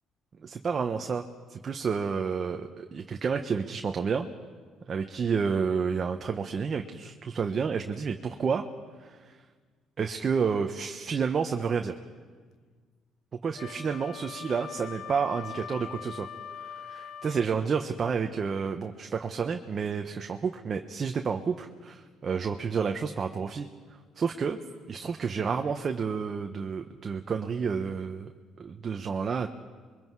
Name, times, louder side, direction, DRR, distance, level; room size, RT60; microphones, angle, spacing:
voice 1, 0.4-1.2 1.5-4.3 4.9-8.6 9.0-9.3 10.0-11.9 13.4-16.3 16.6-23.7 24.2-24.6 24.9-28.3 28.6-29.5, right 6 dB, 40° right, 5 dB, 1.0 m, -30 dB
Wind instrument woodwind instrument, 13.6-17.5, left 8 dB, 75° left, 1.0 m, -42 dB
28.0 x 22.5 x 4.8 m, 1.5 s
cardioid pair, 105°, 0 cm